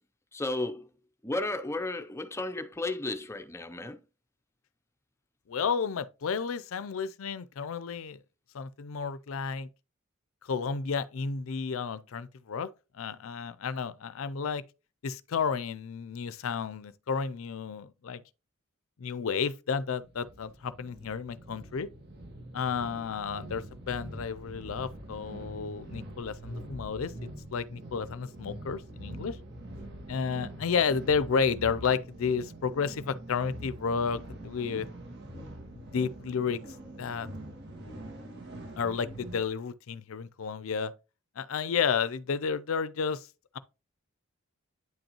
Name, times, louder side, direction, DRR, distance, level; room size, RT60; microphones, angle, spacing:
voice 1, 0.3-0.9 1.2-4.0, left 2 dB, 10° left, 0.5 m, -33 dB
voice 2, 5.5-8.2 8.5-9.7 10.4-12.7 12.9-14.6 15.0-18.2 19.0-21.9 22.5-27.1 27.5-29.4 30.1-34.9 35.9-36.6 37.0-37.3 38.8-40.9 41.4-43.3, left 6 dB, 65° left, 0.5 m, -31 dB
sound 1, 20.0-39.5, right 1 dB, 50° right, 1.8 m, -44 dB
9.3 x 5.3 x 2.9 m
head